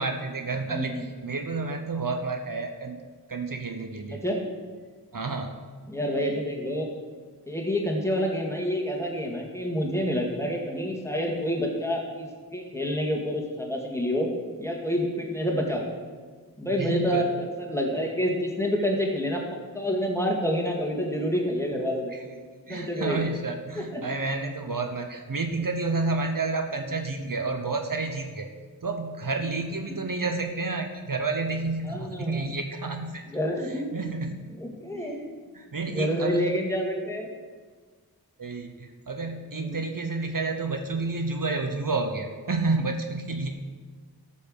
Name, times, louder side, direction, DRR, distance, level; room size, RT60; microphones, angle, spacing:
voice 1, 0.0-4.2 5.1-5.7 16.8-17.3 22.1-22.2 22.7-28.5 28.8-33.2 33.6-34.5 34.9-35.2 35.5-36.6 38.4-43.6, right 3 dB, 55° right, 5 dB, 0.9 m, -30 dB
voice 2, 0.7-1.0 4.1-4.4 5.9-6.9 7.5-14.3 14.6-15.9 16.6-17.3 17.6-19.4 19.7-22.1 22.7-23.2 23.8-24.0 29.9-30.0 31.8-32.5 33.3-33.9 34.6-35.2 35.9-37.3 39.5-39.8, equal, 5° left, 0 dB, 2.1 m, -28 dB
13.0 x 5.6 x 6.5 m, 1.5 s
wide cardioid pair, 45°, 39 cm